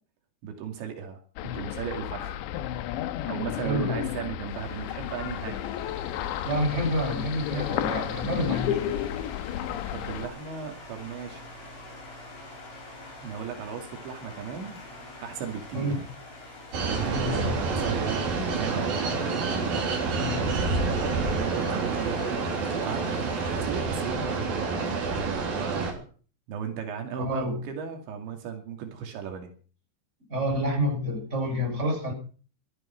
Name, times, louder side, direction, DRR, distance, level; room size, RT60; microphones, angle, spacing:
voice 1, 0.4-1.2 1.5-2.4 3.3-5.6 9.7-11.4 13.2-14.8 15.2-16.0 16.8-19.0 19.4-19.8 21.2-22.3 22.8-26.1 26.5-29.5, right 7 dB, 85° right, 4 dB, 4.6 m, -36 dB
sound 1, 1.4-10.3, left 12 dB, 80° left, 3.2 m, -32 dB
voice 2, 3.6-4.1 6.4-9.0 15.7-16.0 17.1-17.6 20.1-20.5 27.2-27.6 30.3-32.1, equal, 15° right, 1 dB, 6.7 m, -28 dB
sound 2, 4.5-23.6, left 2 dB, 65° left, 7.9 m, -45 dB
sound 3, 16.7-25.9, right 4 dB, 55° right, 5.1 m, -28 dB
16.0 x 13.0 x 5.7 m, 0.40 s
omnidirectional pair, 5.1 m